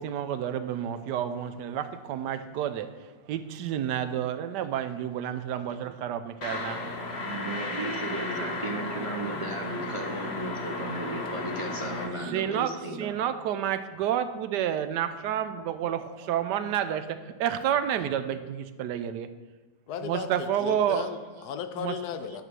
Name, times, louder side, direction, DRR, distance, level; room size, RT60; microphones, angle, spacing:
voice 1, 0.0-2.9 3.3-6.8 7.8-8.6 12.3-19.3 20.0-21.1 21.8-22.0 22.3-22.4, right 10 dB, 85° right, 11 dB, 1.2 m, -30 dB
sound 1, 6.4-12.1, left 2 dB, 45° left, 1.0 m, -34 dB
voice 2, 7.1-13.1, right 2 dB, 30° right, 1 dB, 0.6 m, -35 dB
voice 3, 19.9-22.4, left 8 dB, 75° left, 8 dB, 1.1 m, -36 dB
11.0 x 4.2 x 6.2 m, 1.3 s
omnidirectional pair, 1.8 m